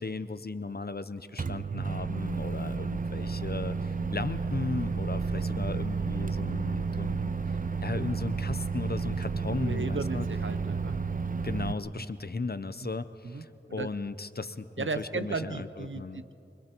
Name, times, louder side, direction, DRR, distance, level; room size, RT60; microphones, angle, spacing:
voice 1, 0.0-10.3 11.4-16.2, left 3 dB, 55° left, 13 dB, 0.7 m, -36 dB
Microwave oven, 1.4-11.7, right 4 dB, 45° right, 0.5 m, -31 dB
voice 2, 9.5-11.0 12.0-12.1 12.8-12.9 13.2-13.9 14.8-16.3, right 4 dB, 80° right, 11 dB, 0.8 m, -36 dB
24.5 x 24.0 x 4.5 m, 2.7 s
wide cardioid pair, 50°, 20 cm